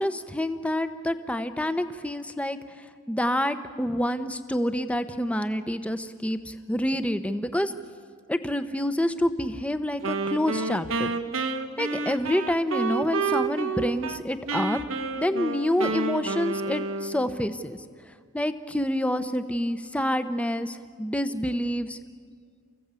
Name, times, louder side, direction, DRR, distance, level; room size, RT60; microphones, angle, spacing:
voice 1, 0.0-2.6 3.1-7.7 8.3-11.1 11.8-14.8 15.2-17.8 18.3-22.0, left 1 dB, 5° left, 10 dB, 0.8 m, -27 dB
Wind instrument woodwind instrument, 10.0-14.2 14.5-17.4, right 4 dB, 80° right, 1.3 m, -29 dB
29.5 x 15.5 x 8.2 m, 2.1 s
head